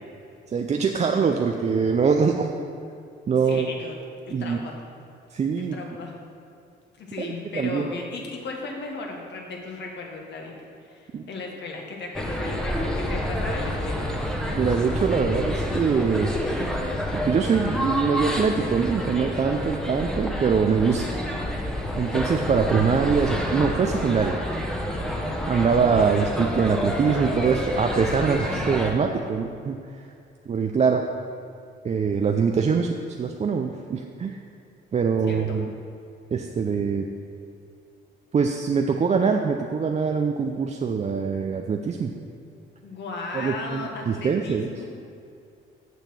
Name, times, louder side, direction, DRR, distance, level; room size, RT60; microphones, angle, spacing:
voice 1, 0.5-2.5 3.3-3.7 4.3-4.6 5.3-5.8 7.2-7.9 11.1-11.3 14.5-16.3 17.1-21.1 22.0-24.4 25.5-29.8 30.5-31.0 31.8-32.9 33.2-34.4 34.9-35.7 36.3-37.1 38.3-42.1 43.3-44.7, right 5 dB, 35° right, 3 dB, 0.5 m, -23 dB
voice 2, 3.4-4.0 4.3-4.8 5.6-6.2 7.0-10.5 10.8-14.2 35.3-35.6 42.8-44.9, left 3 dB, 65° left, 0 dB, 1.5 m, -36 dB
sound 1, 12.1-28.9, equal, 5° left, 1.1 m, -28 dB
6.8 x 6.4 x 6.3 m, 2.4 s
cardioid pair, 90°, 20 cm